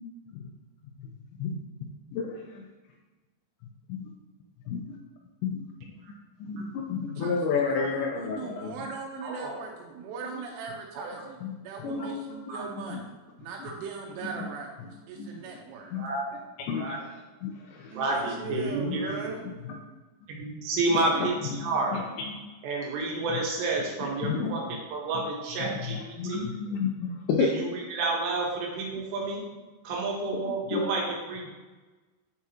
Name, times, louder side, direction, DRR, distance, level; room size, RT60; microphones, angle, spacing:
voice 1, 2.1-2.7 3.9-4.1 4.7-5.0 5.4-5.6 6.1-6.2 6.4-8.8 11.4-11.5 11.8-12.2 12.5-13.0 15.2-15.3 15.9-16.0 16.7-16.9 17.4-18.0 18.8-19.0 21.1-22.4 24.2-24.6 25.6-25.7 26.2-27.5 30.7-30.9, left 5 dB, 85° left, 1 dB, 2.5 m, -31 dB
voice 2, 7.2-7.6 8.1-11.4 11.6-13.1 13.4-15.9 17.9-19.4, right 5 dB, 85° right, -1 dB, 3.1 m, -39 dB
voice 3, 9.2-9.5 11.0-11.1 12.0-12.1 12.5-12.6 13.6-13.7 16.0-16.2 16.7-17.0 17.9-19.3 20.4-22.0 22.6-26.5 27.4-29.4 29.8-31.5, right 3 dB, 70° right, -2 dB, 2.9 m, -30 dB
9.6 x 4.8 x 2.8 m, 1.2 s
omnidirectional pair, 5.7 m